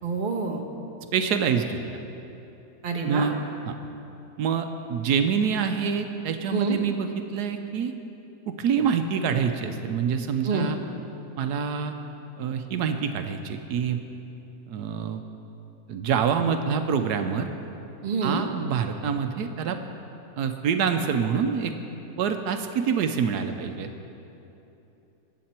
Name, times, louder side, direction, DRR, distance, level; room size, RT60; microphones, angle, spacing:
voice 1, 0.0-0.6 2.8-3.3 6.5-6.8 10.4-10.7 18.0-18.4, right 4 dB, 35° right, 2 dB, 1.2 m, -27 dB
voice 2, 1.1-1.9 3.0-3.3 3.7-3.8 4.4-7.9 8.5-10.8 11.4-11.9 12.4-14.0 14.7-15.2 15.9-17.5 18.2-19.8 20.4-21.7 22.2-23.9, right 6 dB, 80° right, 7 dB, 1.2 m, -26 dB
21.5 x 8.4 x 4.4 m, 2.9 s
omnidirectional pair, 1.7 m